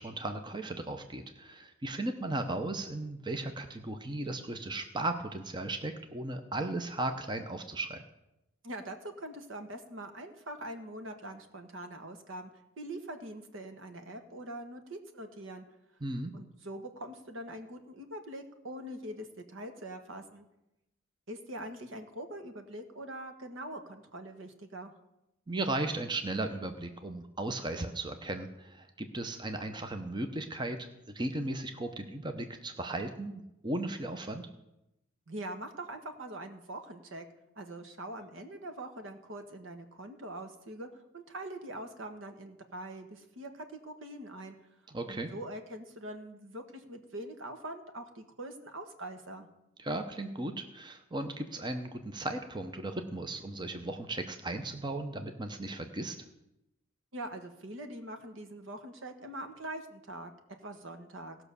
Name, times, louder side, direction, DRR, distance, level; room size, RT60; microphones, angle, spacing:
voice 1, 0.0-8.0 16.0-16.3 25.5-34.5 44.9-45.3 49.8-56.2, right 2 dB, 20° right, 6 dB, 0.8 m, -36 dB
voice 2, 8.6-12.5 12.8-15.6 16.3-20.5 21.3-24.9 35.3-37.2 37.6-44.5 45.1-49.5 57.1-60.3 60.6-61.4, right 1 dB, 70° right, 7 dB, 1.4 m, -43 dB
17.0 x 6.0 x 6.8 m, 0.90 s
head